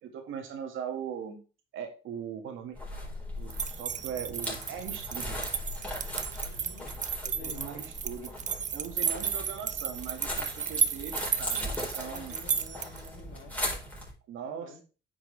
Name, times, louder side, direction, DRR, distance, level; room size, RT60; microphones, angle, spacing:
voice 1, 0.0-1.4 1.7-2.8 3.4-5.4 7.2-8.3 8.7-12.4 14.3-14.8, right 8 dB, 85° right, 5 dB, 2.0 m, -40 dB
sound 1, 2.7-14.1, left 1 dB, 5° left, 4.4 m, -39 dB
sound 2, 3.5-13.1, right 7 dB, 40° right, 0.6 m, -33 dB
voice 2, 6.4-6.9 7.3-7.6 12.0-13.5 14.4-14.8, left 5 dB, 70° left, 2 dB, 2.7 m, -49 dB
9.3 x 6.0 x 3.3 m, 0.34 s
cardioid pair, 90°, 20 cm